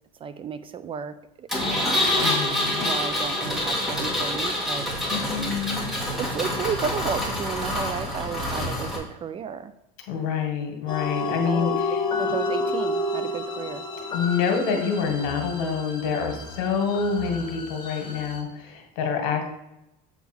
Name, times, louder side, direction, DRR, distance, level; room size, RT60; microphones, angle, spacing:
voice 1, 0.2-2.1 2.8-5.6 6.2-9.7 11.3-11.8 12.2-13.8, right 6 dB, 30° right, 13 dB, 0.4 m, -33 dB
Engine, 1.5-9.0, left 1 dB, ahead, 1.9 m, -26 dB
voice 2, 2.2-2.9 5.1-5.9 10.1-12.0 12.3-12.4 14.1-19.5, left 6 dB, 70° left, 4 dB, 1.8 m, -27 dB
sound 1, 10.9-18.4, left 2 dB, 25° left, 1.3 m, -30 dB
7.1 x 3.6 x 6.0 m, 0.89 s
supercardioid pair, 120°, 19 cm